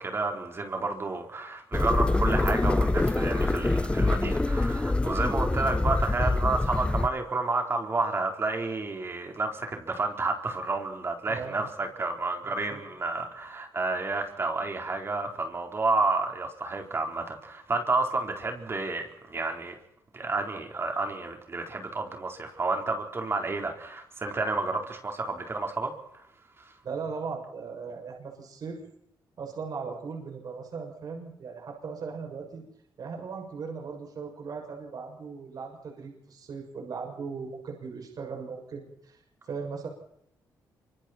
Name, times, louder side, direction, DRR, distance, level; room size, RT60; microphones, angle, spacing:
voice 1, 0.0-19.7 20.1-26.2 26.6-26.7, right 3 dB, 30° right, 3 dB, 4.2 m, -30 dB
sound 1, 1.7-7.1, left 2 dB, 15° left, 0.9 m, -25 dB
voice 2, 11.3-11.7 12.4-12.8 26.8-28.8 29.4-32.6 33.0-39.2 39.5-39.9, right 5 dB, 55° right, 2 dB, 7.1 m, -38 dB
26.5 x 25.5 x 4.5 m, 0.76 s
cardioid pair, 105°, 8 cm